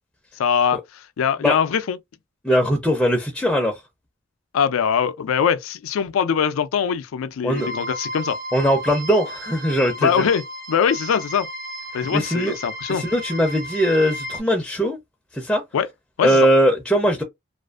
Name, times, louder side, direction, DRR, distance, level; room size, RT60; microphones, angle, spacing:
voice 1, 0.4-2.0 4.5-8.4 10.0-11.5 11.9-13.0 15.7-15.9 16.2-16.5, left 7 dB, 90° left, 0.4 m, -22 dB
voice 2, 2.4-3.8 7.4-7.7 8.5-10.2 12.1-12.6 12.9-15.0 15.3-15.6 16.2-17.2, equal, 5° left, 0.4 m, -20 dB
sound 1, 7.6-14.4, equal, 50° right, 0.6 m, -34 dB
2.4 x 2.4 x 2.3 m
head